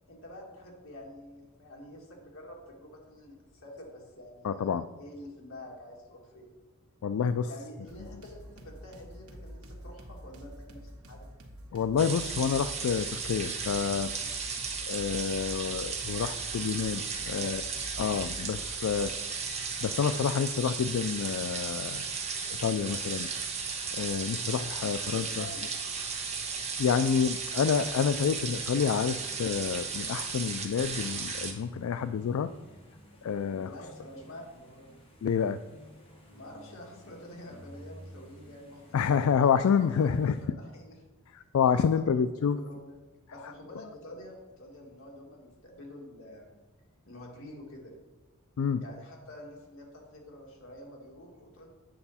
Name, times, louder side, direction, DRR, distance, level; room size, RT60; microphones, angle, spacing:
voice 1, 0.1-6.6 7.5-11.3 17.2-17.6 25.0-25.6 33.6-34.9 36.2-39.0 39.4-41.0 41.7-42.0 42.5-43.0 43.3-46.5 47.1-47.9 48.8-51.7, left 1 dB, 65° left, -1 dB, 2.2 m, -48 dB
voice 2, 4.4-4.9 7.0-7.5 11.7-14.1 14.9-17.6 18.0-19.1 19.8-22.0 22.6-23.3 23.9-25.4 26.8-32.5 33.2-33.7 35.2-35.6 38.9-40.4 41.5-42.6 48.6-48.8, left 7 dB, 80° left, 12 dB, 0.3 m, -28 dB
sound 1, 7.9-19.2, equal, 85° right, 1.3 m, -47 dB
sound 2, 12.0-31.5, right 5 dB, 30° right, 1.2 m, -35 dB
sound 3, 28.8-40.5, equal, 25° left, 1.6 m, -54 dB
8.9 x 6.9 x 4.2 m, 1.2 s
head